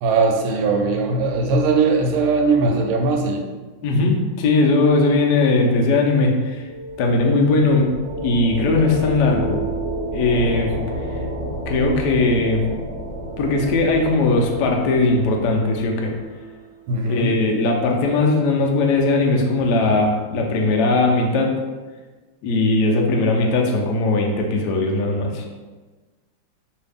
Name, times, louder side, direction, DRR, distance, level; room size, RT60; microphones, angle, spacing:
voice 1, 0.0-3.4 16.9-17.3, right 3 dB, 80° right, 3 dB, 1.3 m, -19 dB
voice 2, 3.8-6.7 7.0-7.9 8.2-9.6 10.1-10.7 11.7-12.6 13.4-16.1 17.0-21.5 22.4-25.4, left 3 dB, 80° left, 1 dB, 0.9 m, -19 dB
sound 1, 6.3-16.8, right 1 dB, 45° right, 1.0 m, -30 dB
3.2 x 2.7 x 3.4 m, 1.3 s
omnidirectional pair, 2.3 m